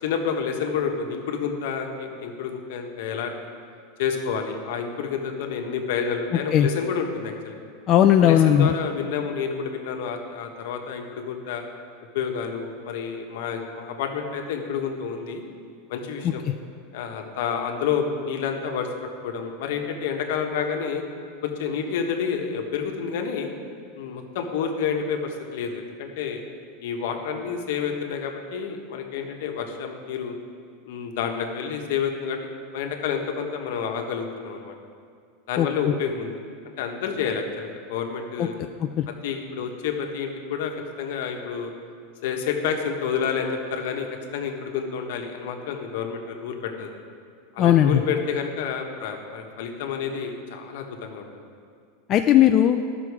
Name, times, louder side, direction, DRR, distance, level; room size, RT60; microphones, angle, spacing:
voice 1, 0.0-3.3 4.0-7.6 8.2-11.6 12.1-15.4 15.9-16.4 16.9-18.9 19.2-21.0 21.4-23.5 23.9-26.4 26.8-30.3 30.9-32.4 32.7-34.7 35.5-36.3 36.8-38.5 39.2-40.7 41.0-41.7 42.2-44.1 44.3-46.9 47.5-51.4, left 6 dB, 70° left, 3 dB, 1.2 m, -29 dB
voice 2, 7.9-8.8 35.6-35.7 38.4-38.5 39.0-39.1 47.6-48.0 52.1-52.8, left 10 dB, 30° left, 5 dB, 0.3 m, -17 dB
13.0 x 6.1 x 4.8 m, 2.2 s
supercardioid pair, 155°, 0 cm